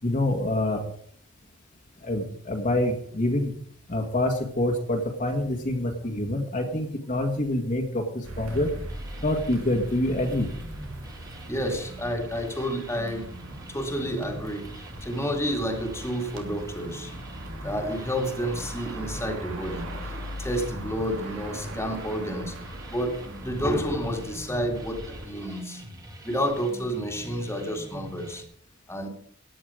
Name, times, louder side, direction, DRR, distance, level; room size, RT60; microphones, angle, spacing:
voice 1, 0.0-0.8 2.0-3.5 3.9-8.7 9.2-10.5, left 1 dB, 40° left, 1 dB, 1.9 m, -26 dB
sound 1, 8.2-25.3, right 1 dB, 75° right, 2.7 m, -40 dB
sound 2, 8.5-28.4, right 1 dB, 20° right, 2.0 m, -44 dB
voice 2, 11.5-13.3 13.7-17.2 17.6-22.6 22.9-25.8 26.2-28.4 28.9-29.1, equal, 15° left, 2 dB, 2.2 m, -30 dB
15.5 x 9.9 x 5.0 m, 0.62 s
head